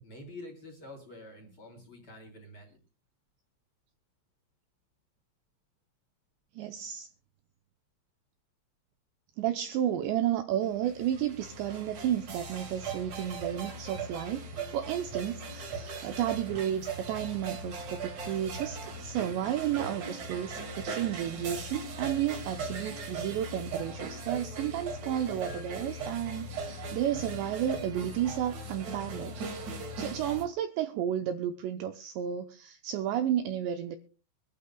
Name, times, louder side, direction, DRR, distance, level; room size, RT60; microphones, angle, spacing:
voice 1, 0.0-2.8, left 1 dB, 30° left, 3.1 m, -47 dB
voice 2, 6.6-7.1 9.4-29.4 29.9-34.0, right 11 dB, 90° right, 2.5 m, -32 dB
sound 1, 10.6-30.4, right 3 dB, 50° right, 2.6 m, -39 dB
24.5 x 12.0 x 2.2 m
omnidirectional pair, 5.9 m